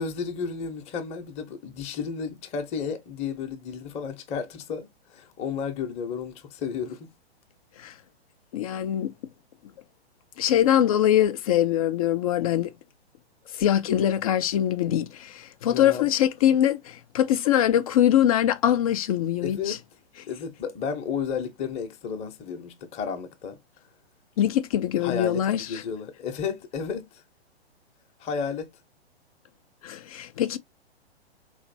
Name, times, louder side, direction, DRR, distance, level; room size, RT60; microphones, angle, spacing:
voice 1, 0.0-7.1 13.5-13.6 15.7-16.1 19.4-19.8 20.3-23.6 25.0-27.2 28.2-28.7, left 6 dB, 20° left, 0.8 m, -32 dB
voice 2, 8.5-9.1 10.4-12.7 13.6-19.8 24.4-25.8 29.8-30.6, left 11 dB, 35° left, 0.4 m, -23 dB
4.0 x 3.1 x 2.6 m
hypercardioid pair, 125°, 33 cm